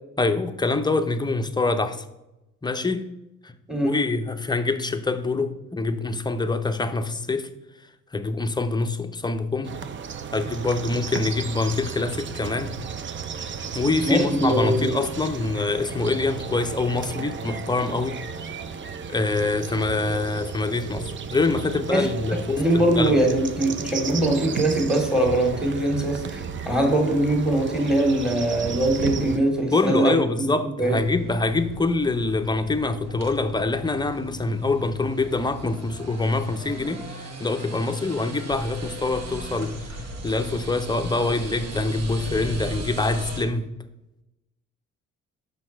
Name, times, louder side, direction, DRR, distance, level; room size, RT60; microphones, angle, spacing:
voice 1, 0.2-2.0 2.6-3.1 3.4-3.5 3.8-7.5 8.1-9.7 10.3-12.7 13.7-18.2 19.1-23.2 29.7-40.0 40.2-43.7, left 3 dB, 15° left, 0.6 m, -25 dB
sound 1, 9.6-29.4, right 6 dB, 40° right, 0.5 m, -34 dB
voice 2, 14.0-14.9 21.9-22.1 22.6-30.5 30.8-31.0, right 1 dB, ahead, 1.8 m, -22 dB
sound 2, 30.9-43.5, right 1 dB, 55° right, 1.1 m, -37 dB
6.2 x 5.4 x 4.5 m
cardioid pair, 90°, 30 cm